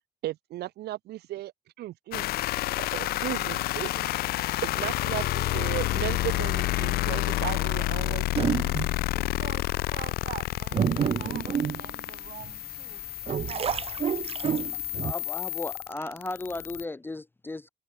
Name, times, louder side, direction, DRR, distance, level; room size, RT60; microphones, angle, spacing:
voice 1, 0.2-1.5 1.8-2.3 2.8-4.1 4.6-8.5, right 15 dB, 75° right, 2.0 m, -35 dB
sound 1, 2.1-16.8, left 16 dB, 65° left, 0.4 m, -30 dB
sound 2, 8.3-9.1 9.7-9.8 10.4-12.5 13.0-15.1, right 8 dB, 35° right, 0.7 m, -29 dB
voice 2, 9.1-13.8, right 10 dB, 55° right, 7.6 m, -45 dB
voice 3, 15.0-17.7, left 2 dB, 10° left, 0.7 m, -35 dB
cardioid pair, 110°, 17 cm